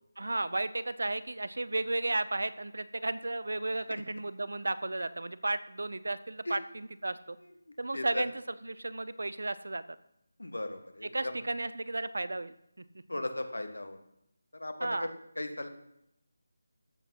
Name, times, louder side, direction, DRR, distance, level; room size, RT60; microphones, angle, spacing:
voice 1, 0.2-7.4 7.8-8.3 8.6-9.8 11.0-12.6 14.8-15.1, right 2 dB, 75° right, 15 dB, 0.7 m, -33 dB
voice 2, 7.9-8.2 10.4-11.4 13.1-14.0 14.5-15.7, left 1 dB, 85° left, 7 dB, 1.6 m, -37 dB
14.0 x 6.0 x 5.7 m, 0.80 s
figure-of-eight pair, 165°, 0 cm